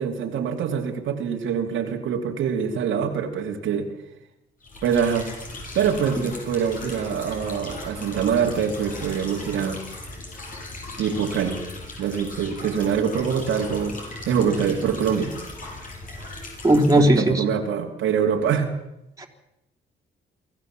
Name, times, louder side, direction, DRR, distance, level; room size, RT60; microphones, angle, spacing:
voice 1, 0.0-3.9 4.8-5.3 5.7-9.8 11.0-11.6 12.0-15.3 16.9-18.7, right 7 dB, 80° right, 2 dB, 2.7 m, -24 dB
sound 1, 4.6-17.0, left 2 dB, 45° left, 7.6 m, -38 dB
voice 2, 16.6-17.4 19.2-19.3, right 1 dB, 15° right, 2 dB, 3.6 m, -17 dB
24.0 x 15.0 x 7.5 m, 0.86 s
cardioid pair, 90°, 20 cm